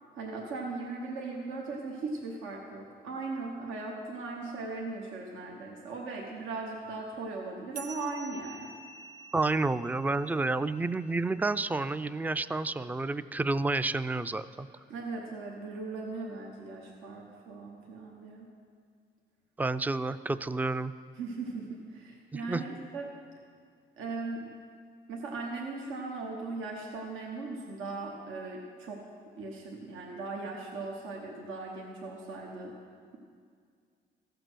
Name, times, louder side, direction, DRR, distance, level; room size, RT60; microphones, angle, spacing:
voice 1, 0.1-8.7 14.9-18.5 21.2-23.1 24.0-24.5 25.1-29.0 29.4-32.7, right 3 dB, 90° right, -1 dB, 1.2 m, -38 dB
sound 1, 7.7-12.6, right 3 dB, 55° right, 1.1 m, -49 dB
voice 2, 9.3-14.7 19.6-20.9 22.3-22.6, right 3 dB, 10° right, 14 dB, 0.3 m, -30 dB
15.0 x 6.8 x 6.2 m, 2.2 s
cardioid pair, 90°, 20 cm